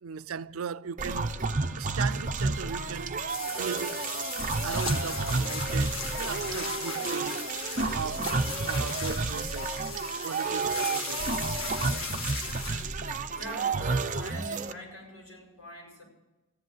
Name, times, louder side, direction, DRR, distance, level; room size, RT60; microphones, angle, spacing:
voice 1, 0.0-1.4 1.8-3.3 3.6-4.1 4.6-7.4 7.9-8.3 8.6-9.8 10.2-11.4, right 6 dB, 90° right, 0.5 m, -38 dB
sound 1, 1.0-14.7, right 3 dB, 40° right, 0.7 m, -31 dB
sound 2, 3.3-13.7, left 4 dB, 75° left, 1.9 m, -37 dB
voice 2, 13.4-16.0, left 1 dB, 90° left, 6.8 m, -43 dB
14.5 x 10.5 x 7.9 m
head